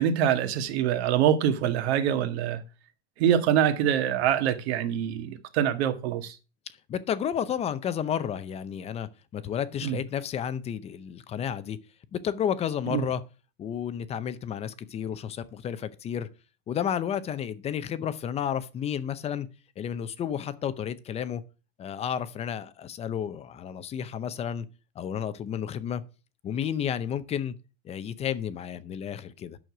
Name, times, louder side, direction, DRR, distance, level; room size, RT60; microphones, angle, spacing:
voice 1, 0.0-2.6 3.2-6.4 9.8-10.0 12.9-13.0, right 9 dB, 65° right, 1.8 m, -25 dB
voice 2, 6.9-11.8 12.1-13.2 13.6-16.3 16.7-19.5 19.8-21.4 21.8-24.7 25.0-26.0 26.4-27.5 27.8-29.6, left 9 dB, 20° left, 0.6 m, -31 dB
9.3 x 6.4 x 6.0 m
supercardioid pair, 150°, 35 cm